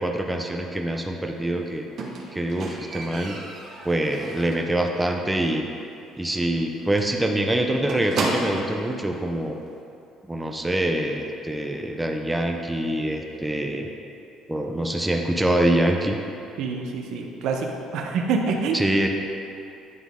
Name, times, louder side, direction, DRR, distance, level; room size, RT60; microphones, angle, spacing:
voice 1, 0.0-1.8 2.3-3.4 3.8-5.7 6.2-9.6 10.3-13.9 14.5-16.2 18.7-19.1, right 1 dB, 5° right, 2 dB, 0.5 m, -25 dB
Squeak, 2.0-4.7 5.1-5.5 5.8-5.9 6.2-6.3 6.6-6.7 7.0-8.8 9.7-9.8, right 3 dB, 50° right, 0.9 m, -32 dB
voice 2, 16.6-18.9, right 4 dB, 75° right, 2 dB, 0.7 m, -26 dB
9.4 x 3.9 x 3.6 m, 2.7 s
cardioid pair, 120°, 0 cm